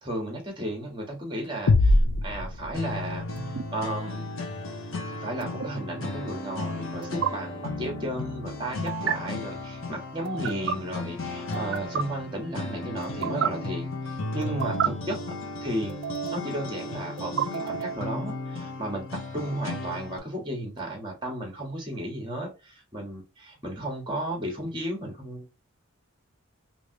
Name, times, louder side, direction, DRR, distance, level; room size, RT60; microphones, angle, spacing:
voice 1, 0.0-4.3 5.2-15.2 15.6-16.0 16.3-25.5, right 1 dB, 20° right, 2 dB, 1.2 m, -34 dB
sound 1, 1.7-3.4, left 2 dB, 80° left, 0.5 m, -22 dB
sound 2, 2.7-20.2, left 2 dB, 60° left, 0.9 m, -35 dB
sound 3, 3.4-3.6 5.4-5.7 7.0-7.3 8.9-9.1 10.2-10.8 11.5-12.0 13.0-13.5 14.4-14.9 15.9-16.5 17.2-18.0, right 8 dB, 55° right, 0.3 m, -30 dB
3.2 x 2.8 x 2.7 m, 0.27 s
head